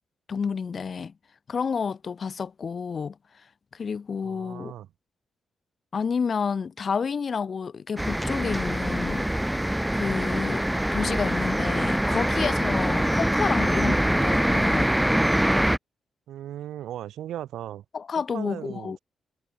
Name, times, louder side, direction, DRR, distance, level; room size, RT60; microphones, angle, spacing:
voice 1, 0.3-1.1 1.5-3.2 3.7-4.7 5.9-9.3 9.9-10.7 10.9-14.9 17.9-19.0, left 6 dB, 50° left, 2.9 m, -30 dB
voice 2, 4.2-4.9 16.3-17.8 18.3-19.0, right 12 dB, 85° right, 5.3 m, -37 dB
sound 1, 8.0-15.8, right 1 dB, 5° right, 3.7 m, -24 dB
cardioid pair, 70°, 0 cm